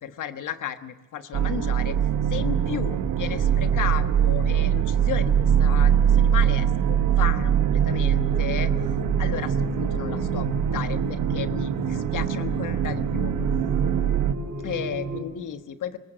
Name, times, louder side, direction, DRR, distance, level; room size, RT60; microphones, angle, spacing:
voice 1, 0.0-2.0 2.3-8.7 9.2-13.3 14.6-16.0, left 9 dB, 75° left, 9 dB, 1.3 m, -34 dB
sound 1, 1.3-14.3, right 9 dB, 85° right, 1.0 m, -23 dB
sound 2, 2.3-15.2, right 2 dB, 60° right, 5.2 m, -33 dB
22.5 x 20.0 x 7.9 m, 1.3 s
wide cardioid pair, 180°, 31 cm